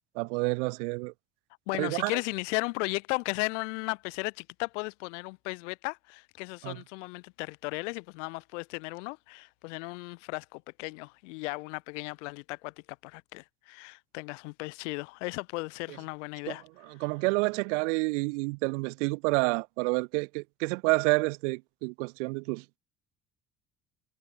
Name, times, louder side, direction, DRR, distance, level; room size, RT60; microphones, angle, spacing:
voice 1, 0.1-1.1 1.8-2.1 6.6-6.8 16.5-16.6 17.0-22.6, right 29 dB, 75° right, 1.3 m, -29 dB
voice 2, 1.7-16.6, left 27 dB, 80° left, 2.9 m, -36 dB
hypercardioid pair, 60°, 36 cm